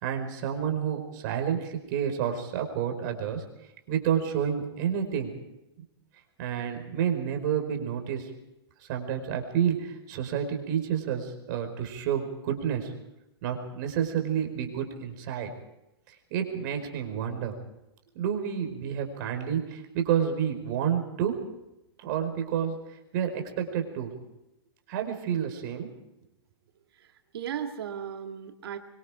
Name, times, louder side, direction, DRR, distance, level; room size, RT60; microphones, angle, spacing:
voice 1, 0.0-3.4 3.9-5.3 6.4-8.3 8.8-12.9 13.4-15.5 16.1-17.5 18.1-21.4 22.0-22.8 23.1-24.1 24.9-25.9, right 8 dB, 50° right, 5 dB, 4.8 m, -29 dB
voice 2, 26.9-28.8, right 8 dB, 65° right, 5 dB, 2.0 m, -36 dB
24.5 x 24.0 x 5.0 m, 0.92 s
hypercardioid pair, 120°, 13 cm